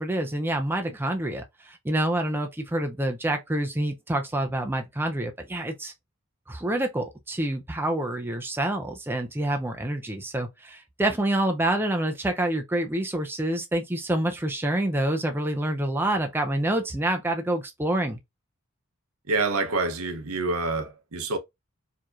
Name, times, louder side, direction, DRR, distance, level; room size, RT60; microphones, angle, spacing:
voice 1, 0.0-5.9 6.5-18.2, right 1 dB, 10° right, 0.5 m, -27 dB
voice 2, 19.3-21.4, right 3 dB, 85° right, 0.8 m, -27 dB
4.6 x 2.8 x 2.4 m
head